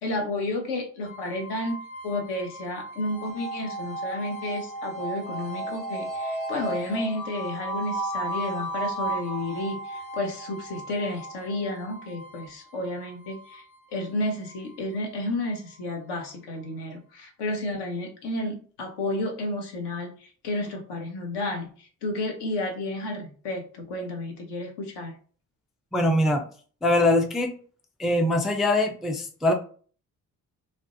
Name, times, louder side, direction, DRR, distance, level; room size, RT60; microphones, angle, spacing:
voice 1, 0.0-13.6 13.9-25.2, left 1 dB, 70° left, 3 dB, 0.7 m, -31 dB
sound 1, 1.0-16.0, right 1 dB, 30° left, 0.9 m, -35 dB
voice 2, 25.9-26.4 26.8-27.5 28.0-29.5, left 1 dB, ahead, 4 dB, 0.3 m, -22 dB
2.4 x 2.0 x 2.5 m, 0.42 s
hypercardioid pair, 40°, 43 cm